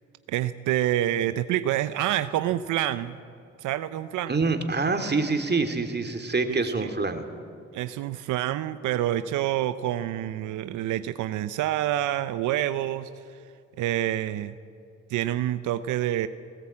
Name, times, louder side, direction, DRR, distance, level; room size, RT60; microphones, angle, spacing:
voice 1, 0.3-3.2 3.6-4.3 6.5-6.9 7.7-13.1 13.8-14.5 15.1-16.3, right 13 dB, 85° right, 13 dB, 0.6 m, -27 dB
voice 2, 4.3-7.3, right 3 dB, 35° right, 6 dB, 2.6 m, -26 dB
18.5 x 17.0 x 8.6 m, 2.6 s
supercardioid pair, 55°, 30 cm